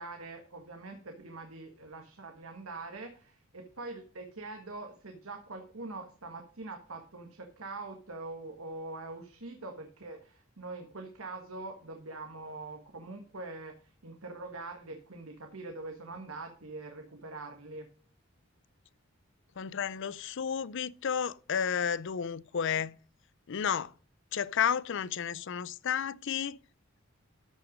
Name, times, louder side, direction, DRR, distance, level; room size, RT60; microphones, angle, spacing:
voice 1, 0.0-17.9, right 3 dB, 80° right, 1.6 m, -43 dB
voice 2, 19.6-23.0 23.5-23.9 24.3-26.6, left 7 dB, 60° left, 0.5 m, -32 dB
13.5 x 5.9 x 5.1 m
head